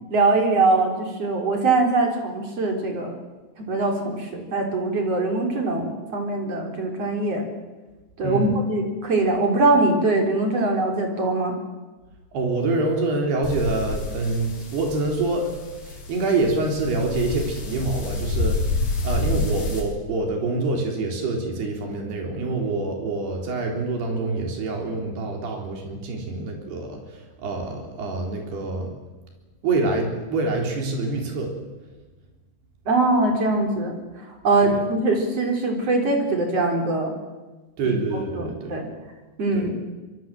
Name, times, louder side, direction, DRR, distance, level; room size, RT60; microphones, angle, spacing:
voice 1, 0.0-3.2 3.6-7.5 8.2-11.6 32.9-37.1 37.8-37.9 38.4-38.9 39.4-39.7, right 2 dB, 40° right, 2 dB, 4.8 m, -22 dB
voice 2, 8.2-8.5 12.3-15.5 15.8-18.6 19.0-28.9 29.6-31.6 34.6-34.8 37.8-38.8 39.5-39.7, right 3 dB, 80° right, 2 dB, 6.0 m, -26 dB
sound 1, 13.4-19.8, left 3 dB, 65° left, 6.2 m, -28 dB
25.5 x 23.0 x 7.7 m, 1.2 s
omnidirectional pair, 4.6 m